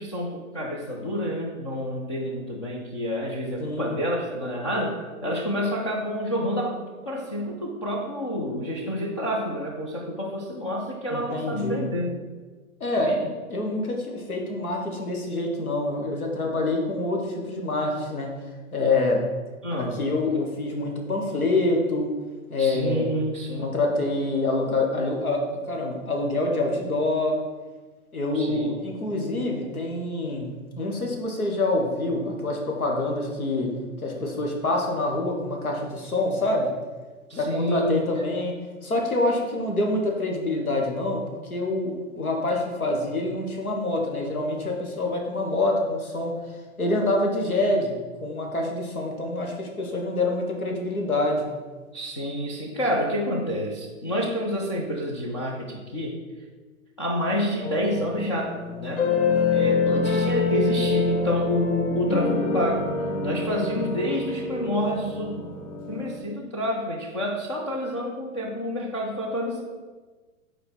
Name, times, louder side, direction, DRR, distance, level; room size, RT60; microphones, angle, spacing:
voice 1, 0.0-12.2 13.0-13.3 19.6-20.0 22.6-23.7 28.3-28.7 37.3-38.1 51.9-56.2 57.0-59.1 59.5-62.9 63.2-65.5 65.9-69.6, equal, 25° left, -3 dB, 0.3 m, -28 dB
voice 2, 3.6-3.9 11.1-11.9 12.8-13.1 13.5-18.3 18.7-19.2 20.0-22.1 22.5-23.0 23.6-27.4 28.1-33.7 34.0-36.7 37.3-38.5 38.8-46.3 46.8-47.9 48.2-51.5, left 2 dB, 85° left, 0 dB, 1.4 m, -26 dB
sound 1, 57.6-66.2, left 4 dB, 60° left, 1.0 m, -26 dB
5.3 x 4.3 x 4.3 m, 1.3 s
figure-of-eight pair, 120°, 42 cm